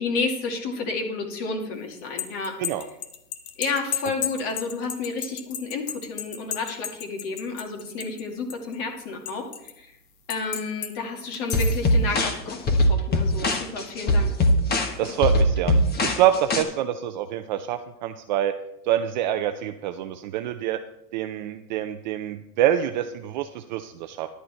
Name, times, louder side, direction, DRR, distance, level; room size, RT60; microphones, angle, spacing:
voice 1, 0.0-2.6 3.6-9.9 10.3-14.3, left 3 dB, 45° left, 3 dB, 2.6 m, -31 dB
sound 1, 1.9-8.2 8.5-9.7 10.3-10.9 11.3-11.9, left 10 dB, 60° left, 1.5 m, -33 dB
sound 2, 11.5-16.6, left 1 dB, 20° left, 1.3 m, -21 dB
voice 2, 15.0-18.6 18.8-20.8 21.1-24.3, right 11 dB, 30° right, 8 dB, 0.4 m, -26 dB
11.0 x 10.0 x 4.4 m, 0.85 s
hypercardioid pair, 125°, 48 cm